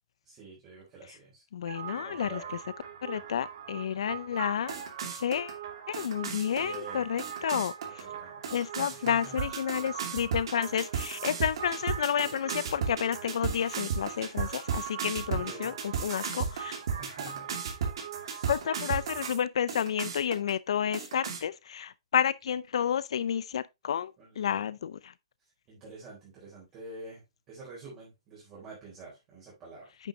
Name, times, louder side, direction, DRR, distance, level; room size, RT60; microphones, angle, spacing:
voice 1, 0.2-1.4 1.9-2.6 6.4-7.1 7.9-8.6 8.9-9.4 15.3-15.7 17.0-17.6 18.1-18.6 24.2-24.7 25.4-29.9, right 3 dB, 20° right, 3.9 m, -48 dB
voice 2, 1.5-2.4 3.0-4.7 5.1-5.6 5.9-8.0 8.5-16.8 18.5-25.1 30.0-30.1, left 8 dB, 60° left, 0.5 m, -31 dB
sound 1, 1.7-19.4 19.7-20.5 20.9-21.4, right 7 dB, 50° right, 2.5 m, -36 dB
9.1 x 6.7 x 2.8 m
hypercardioid pair, 170°, 3 cm